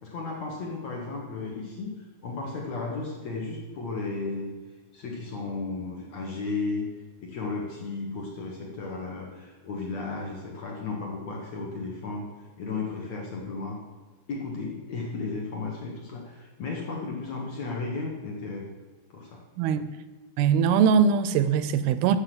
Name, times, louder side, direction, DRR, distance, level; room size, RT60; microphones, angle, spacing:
voice 1, 0.0-1.9 2.2-4.5 4.9-6.9 7.2-12.3 12.6-13.8 14.3-18.6 19.1-19.4, left 3 dB, 55° left, -1 dB, 2.3 m, -34 dB
voice 2, 19.6-19.9 20.4-22.2, right 7 dB, 80° right, 12 dB, 2.4 m, -21 dB
10.0 x 7.0 x 7.7 m, 1.2 s
omnidirectional pair, 4.6 m